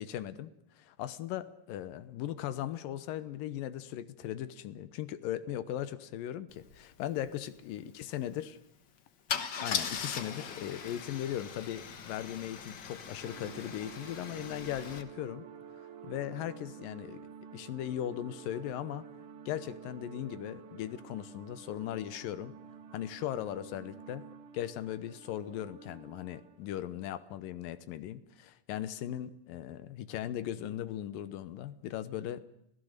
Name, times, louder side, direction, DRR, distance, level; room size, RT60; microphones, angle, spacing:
voice 1, 0.0-8.6 9.6-15.4 16.0-17.2 17.5-19.0 19.5-22.5 22.9-24.2 24.5-32.4, left 11 dB, 90° left, 13 dB, 2.7 m, -38 dB
Car / Engine starting / Idling, 6.7-6.8 7.0-7.3 9.3-15.0, left 6 dB, 55° left, 1.3 m, -39 dB
sound 1, 13.2-26.8, right 7 dB, 55° right, 1.7 m, -50 dB
29.0 x 16.5 x 6.6 m, 0.75 s
omnidirectional pair, 3.9 m